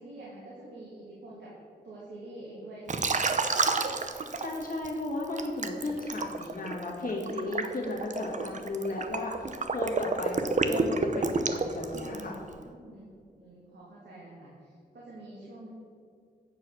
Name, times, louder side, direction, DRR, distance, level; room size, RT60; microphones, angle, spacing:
voice 1, 0.0-1.5 1.8-3.3 12.0-15.7, right 1 dB, 75° right, -6 dB, 1.9 m, -47 dB
Liquid, 2.9-4.9 5.4-12.4, right 4 dB, 45° right, 0.7 m, -29 dB
voice 2, 4.1-12.3, left 2 dB, 50° left, -2 dB, 2.0 m, -35 dB
8.8 x 4.7 x 6.3 m, 2.3 s
cardioid pair, 65°, 18 cm